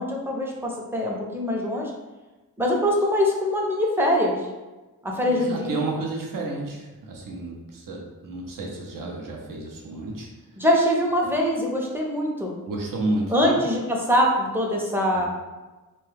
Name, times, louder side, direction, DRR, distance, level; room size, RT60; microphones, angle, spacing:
voice 1, 0.0-1.9 2.6-4.4 5.0-5.7 10.6-12.6 13.3-15.3, equal, 5° right, -2 dB, 0.5 m, -23 dB
voice 2, 5.3-10.6 12.7-13.6 15.1-15.3, right 2 dB, 65° right, 0 dB, 0.7 m, -31 dB
2.9 x 2.2 x 3.2 m, 1.2 s
wide cardioid pair, 100°, 36 cm